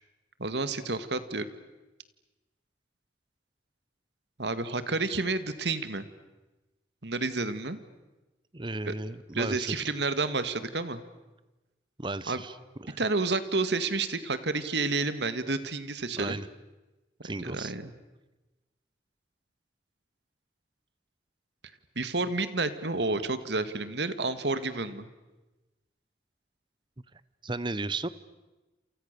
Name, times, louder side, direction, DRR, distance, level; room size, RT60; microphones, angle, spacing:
voice 1, 0.4-1.4 4.4-6.1 7.0-7.8 8.9-9.0 9.3-11.0 12.3-12.4 13.0-16.4 17.2-17.9 22.0-25.1, right 3 dB, 75° right, 12 dB, 1.9 m, -30 dB
voice 2, 8.5-9.9 12.0-12.5 12.8-13.0 16.2-16.5 17.2-17.7 27.4-28.1, right 2 dB, 25° right, 17 dB, 0.9 m, -34 dB
28.5 x 28.5 x 6.8 m, 1.1 s
head